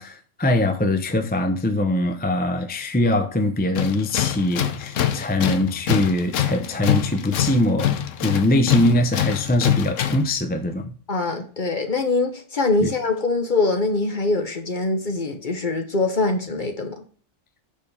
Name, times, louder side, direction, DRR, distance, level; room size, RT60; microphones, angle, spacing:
voice 1, 0.0-7.9 8.2-10.9 12.8-12.9, left 1 dB, 10° left, 0.6 m, -22 dB
Tools, 3.7-10.3, left 10 dB, 75° left, 1.1 m, -25 dB
voice 2, 11.1-17.0, left 3 dB, 40° left, 1.2 m, -23 dB
7.0 x 5.3 x 5.4 m
omnidirectional pair, 1.3 m